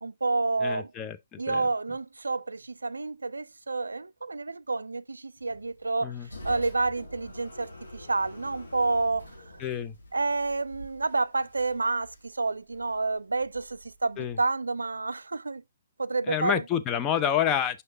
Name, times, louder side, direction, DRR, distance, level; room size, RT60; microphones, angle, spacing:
voice 1, 0.0-0.9 1.4-6.1 6.4-9.3 10.1-15.6 16.0-16.6, right 3 dB, 80° right, 0.3 m, -29 dB
voice 2, 0.6-1.6 6.0-6.3 9.6-9.9 14.2-14.4 16.3-17.8, left 9 dB, 20° left, 0.6 m, -28 dB
sound 1, 5.4-14.5, left 1 dB, 80° left, 2.2 m, -47 dB
6.3 x 5.5 x 2.7 m
figure-of-eight pair, 125°, 0 cm